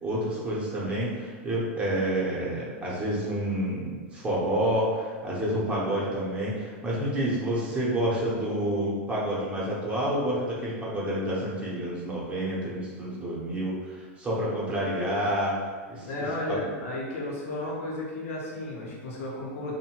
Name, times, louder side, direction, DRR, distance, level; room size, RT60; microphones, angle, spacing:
voice 1, 0.0-15.5 15.9-16.6, right 1 dB, 15° right, -6 dB, 0.9 m, -29 dB
voice 2, 16.0-19.7, left 1 dB, 70° left, -4 dB, 0.9 m, -33 dB
2.7 x 2.2 x 3.0 m, 1.5 s
hypercardioid pair, 110°, 7 cm